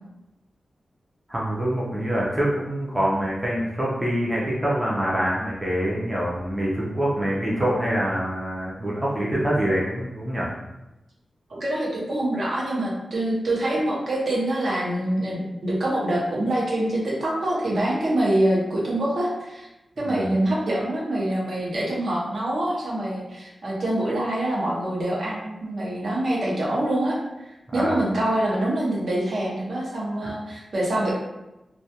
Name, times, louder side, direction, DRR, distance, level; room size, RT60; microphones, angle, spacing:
voice 1, 1.3-10.5 20.0-20.3 27.7-28.0 30.2-30.3, equal, 10° right, -6 dB, 0.4 m, -25 dB
voice 2, 11.5-19.7 20.0-27.2 27.4-31.1, right 1 dB, 60° right, -4 dB, 0.6 m, -25 dB
2.2 x 2.2 x 2.7 m, 0.97 s
wide cardioid pair, 170°, 0 cm